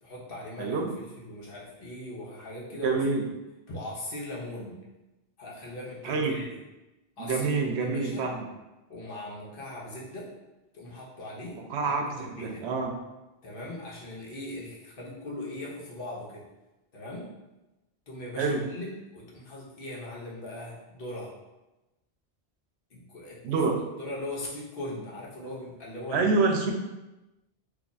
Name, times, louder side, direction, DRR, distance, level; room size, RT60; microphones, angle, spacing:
voice 1, 0.0-3.0 3.7-4.8 5.4-6.5 7.2-8.3 8.9-10.3 10.7-12.7 13.4-16.4 16.9-17.3 18.1-21.3 22.9-23.6 24.0-26.3, left 1 dB, 60° left, -5 dB, 1.1 m, -40 dB
voice 2, 0.6-0.9 2.8-3.3 6.0-6.4 7.2-8.5 11.7-12.9 18.4-18.6 23.4-23.8 26.1-26.7, right 4 dB, 85° right, 3 dB, 0.8 m, -27 dB
3.0 x 2.3 x 3.9 m, 1.0 s
omnidirectional pair, 1.1 m